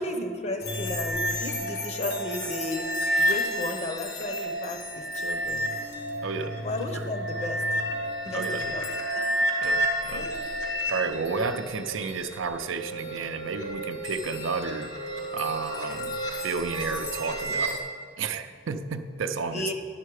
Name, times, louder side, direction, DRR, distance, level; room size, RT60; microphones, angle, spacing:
voice 1, 0.0-2.9 3.2-5.7 6.6-7.6 8.2-8.9 9.1-9.3 10.1-10.5 19.5-19.7, left 1 dB, 35° left, 6 dB, 0.7 m, -34 dB
sound 1, 0.6-17.8, equal, 70° left, 1.3 m, -31 dB
voice 2, 6.2-6.6 6.9-7.1 8.3-8.7 9.6-10.3 10.9-14.9 15.3-16.2 16.4-17.8 18.2-19.7, right 4 dB, 80° right, 9 dB, 0.5 m, -31 dB
11.0 x 6.5 x 4.8 m, 2.2 s
head